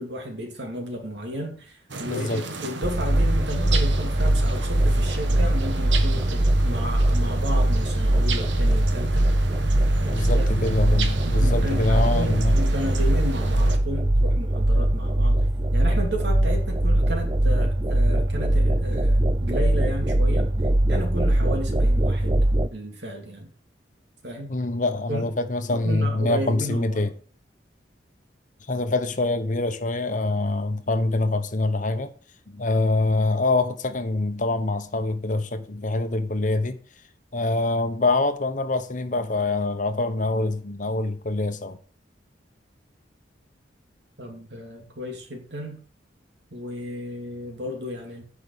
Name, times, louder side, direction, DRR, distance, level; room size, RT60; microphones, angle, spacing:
voice 1, 0.0-9.3 10.0-10.4 11.3-15.5 15.7-20.5 20.9-23.5 24.2-24.5 25.1-25.3 25.7-27.1 44.2-45.8 46.5-48.2, equal, 65° right, 2.9 m, -33 dB
sound 1, 1.9-13.8, right 3 dB, 80° right, 1.5 m, -34 dB
voice 2, 2.1-2.4 10.1-12.6 24.5-27.1 28.7-32.1 32.5-36.8 37.3-41.8, left 2 dB, 45° left, 1.0 m, -25 dB
sound 2, 2.8-22.7, right 1 dB, 25° right, 0.6 m, -21 dB
9.6 x 6.2 x 6.8 m
head